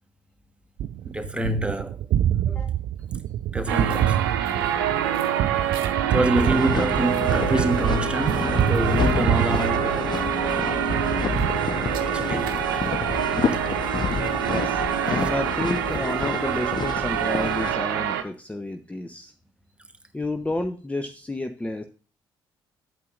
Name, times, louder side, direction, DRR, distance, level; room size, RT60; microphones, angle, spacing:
Gunshot gunfire, 0.8-10.5 10.9-12.3, right 11 dB, 55° right, 0.4 m, -27 dB
voice 1, 1.0-2.1 3.5-4.2 5.0-5.1 6.0-10.1 11.7-12.6 15.2-15.3, right 1 dB, 10° right, 1.3 m, -27 dB
sound 1, 3.7-18.2, right 10 dB, 75° right, 0.7 m, -26 dB
sound 2, 6.3-17.8, left 5 dB, 40° left, 0.8 m, -29 dB
voice 2, 14.5-19.3 20.1-21.8, left 1 dB, 10° left, 0.7 m, -31 dB
10.5 x 8.4 x 2.5 m
figure-of-eight pair, 45°, 12 cm